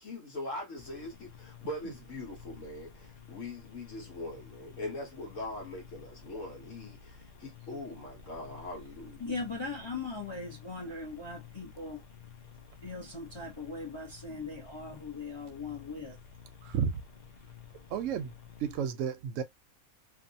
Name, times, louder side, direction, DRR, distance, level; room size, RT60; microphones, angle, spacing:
voice 1, 0.0-9.2, left 2 dB, 65° left, 1.2 m, -41 dB
sound 1, 0.8-18.8, left 6 dB, 80° left, 0.4 m, -52 dB
voice 2, 9.2-12.0 12.8-16.2, left 3 dB, 25° left, 0.7 m, -39 dB
voice 3, 16.6-16.9 17.9-18.3 18.6-19.4, right 8 dB, 70° right, 0.9 m, -32 dB
2.7 x 2.3 x 2.6 m
omnidirectional pair, 1.5 m